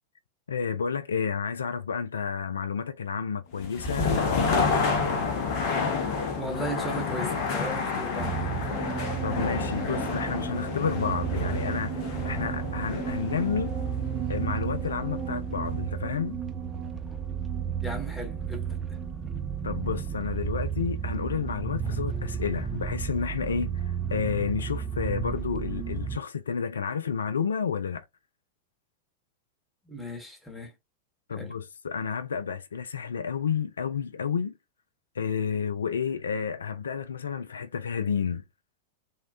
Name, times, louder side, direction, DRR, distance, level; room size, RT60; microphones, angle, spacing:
voice 1, 0.5-5.0 9.2-13.8 14.3-16.4 19.6-28.0 31.3-34.5 35.2-38.4, left 6 dB, 70° left, 0.3 m, -31 dB
sound 1, 3.6-15.4, left 5 dB, 45° left, 0.7 m, -30 dB
voice 2, 6.4-8.5 17.8-19.0 29.9-30.7 31.3-31.5, right 1 dB, ahead, 1.0 m, -37 dB
sound 2, 8.2-26.2, right 7 dB, 15° right, 0.5 m, -32 dB
3.5 x 2.0 x 2.8 m
figure-of-eight pair, 90°, 0 cm